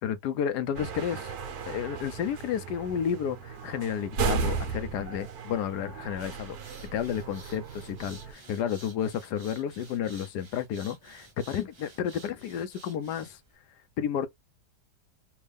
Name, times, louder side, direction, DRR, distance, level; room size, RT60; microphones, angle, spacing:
voice 1, 0.0-1.4 1.6-6.6 6.9-13.4 14.0-14.3, left 8 dB, 80° left, 1.2 m, -31 dB
sound 1, 0.7-8.3, right 5 dB, 70° right, 1.3 m, -35 dB
sound 2, 6.5-13.5, right 3 dB, 50° right, 0.3 m, -52 dB
3.5 x 2.4 x 3.4 m
omnidirectional pair, 1.8 m